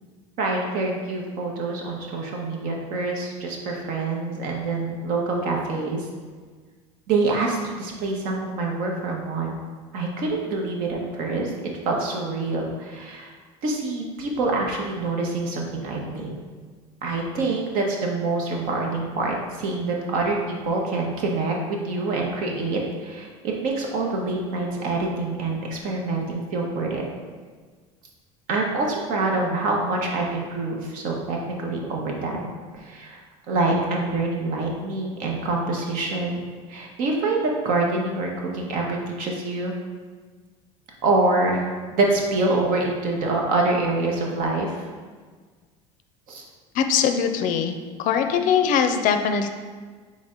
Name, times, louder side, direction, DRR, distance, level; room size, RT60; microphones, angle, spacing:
voice 1, 0.4-6.1 7.1-9.6 9.9-11.5 11.8-13.3 13.6-16.3 17.0-27.0 28.5-32.4 32.7-39.7 41.0-44.9 46.3-46.4, right 3 dB, 65° right, 0 dB, 1.0 m, -26 dB
voice 2, 46.7-49.5, left 7 dB, 55° left, 7 dB, 0.5 m, -22 dB
4.1 x 3.2 x 3.7 m, 1.5 s
supercardioid pair, 85°, 16 cm